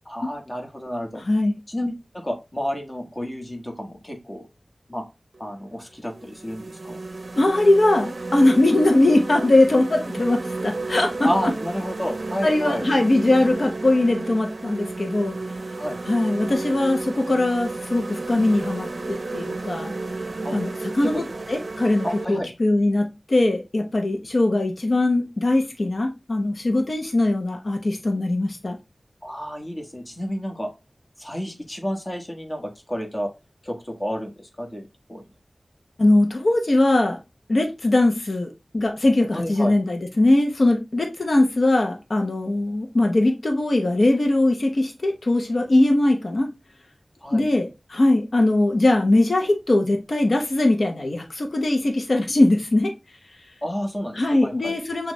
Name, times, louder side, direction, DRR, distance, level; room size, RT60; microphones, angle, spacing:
voice 1, 0.0-1.2 1.7-4.5 4.9-5.0 5.4-7.0 11.2-12.8 15.8-16.0 20.4-20.6 21.0-21.2 22.0-22.5 29.2-30.7 31.2-33.3 33.6-35.3 39.3-39.7 47.2-47.4 53.6-54.8, equal, 30° left, 1.4 m, -30 dB
voice 2, 1.3-1.6 7.4-11.3 12.4-15.3 16.0-19.9 20.5-28.8 36.0-37.2 37.5-46.5 47.3-52.9 54.1-55.1, left 2 dB, 70° left, 0.8 m, -21 dB
sound 1, 5.3-5.5 6.1-22.2, right 3 dB, 60° right, 0.5 m, -32 dB
6.1 x 2.4 x 3.1 m
wide cardioid pair, 50°, 0 cm